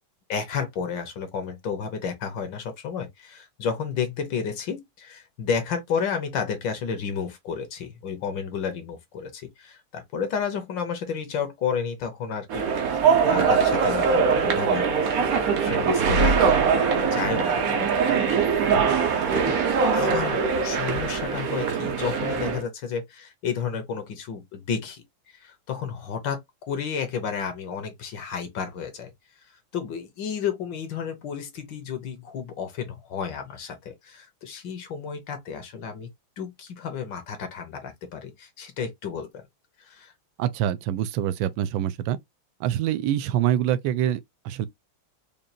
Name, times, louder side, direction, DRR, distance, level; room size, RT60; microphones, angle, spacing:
voice 1, 0.3-12.7 13.3-15.0 15.5-19.6 19.9-25.0 25.4-26.4 26.7-29.1 29.7-36.1 36.4-39.5 39.8-40.1, left 6 dB, 70° left, 1.6 m, -32 dB
sound 1, 12.5-22.6, right 5 dB, 60° right, 1.0 m, -22 dB
voice 2, 40.4-42.2 42.6-44.7, right 11 dB, 75° right, 1.3 m, -25 dB
5.2 x 2.5 x 2.7 m
omnidirectional pair, 2.2 m